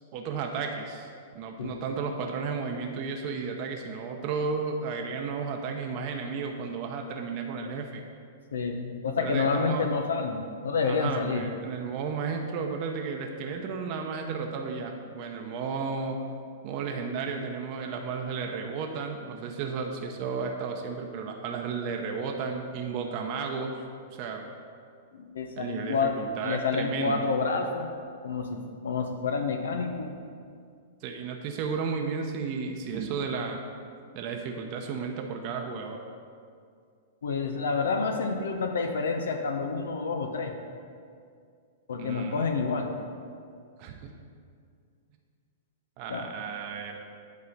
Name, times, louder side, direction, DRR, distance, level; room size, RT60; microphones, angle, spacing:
voice 1, 0.1-1.1 1.3-8.0 9.2-9.9 10.8-16.2 16.6-23.8 24.2-24.4 25.6-27.3 31.0-33.6 34.1-36.0 42.0-42.4 43.8-44.0 46.0-47.0, right 5 dB, 45° right, 2 dB, 0.8 m, -33 dB
voice 2, 8.5-11.4 25.1-26.2 26.4-27.9 28.2-30.1 37.2-40.5 41.9-42.9 46.1-46.3, left 4 dB, 85° left, 5 dB, 0.7 m, -29 dB
8.4 x 4.1 x 6.5 m, 2.2 s
hypercardioid pair, 120°, 0 cm